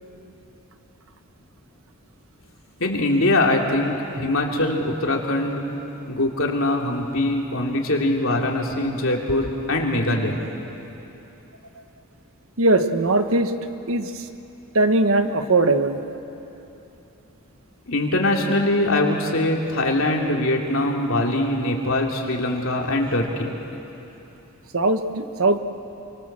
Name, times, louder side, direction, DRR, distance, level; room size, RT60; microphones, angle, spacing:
voice 1, 2.8-5.6 6.1-10.4 17.9-23.5, left 1 dB, 60° left, 0 dB, 3.2 m, -22 dB
voice 2, 12.6-13.5 13.9-14.1 14.7-16.0 24.7-25.6, right 2 dB, 65° right, 8 dB, 1.3 m, -19 dB
29.5 x 24.5 x 7.6 m, 3.0 s
head